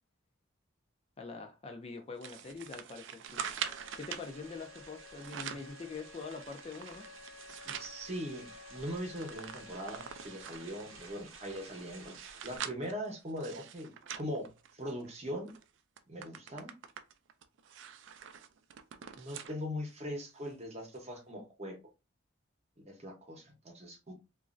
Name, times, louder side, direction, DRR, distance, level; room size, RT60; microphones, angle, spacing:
voice 1, 1.2-3.4 3.9-7.1, left 4 dB, 30° left, 0.4 m, -44 dB
sound 1, 2.2-4.3 5.0-5.7 6.2-7.9 8.4-8.5 8.7-10.7 11.3-15.1 15.5-15.6 16.0-19.6 20.0-20.1 20.9-21.0, right 8 dB, 60° right, 0.3 m, -44 dB
sound 2, 3.3-12.6, right 4 dB, 80° right, 0.7 m, -54 dB
Wind instrument woodwind instrument, 3.6-11.3, left 5 dB, 90° left, 0.6 m, -55 dB
voice 2, 7.6-12.2 12.4-13.9 14.2-15.5 16.1-16.7 19.2-21.8 22.8-24.1, equal, 30° right, 0.8 m, -41 dB
2.9 x 2.4 x 2.4 m
head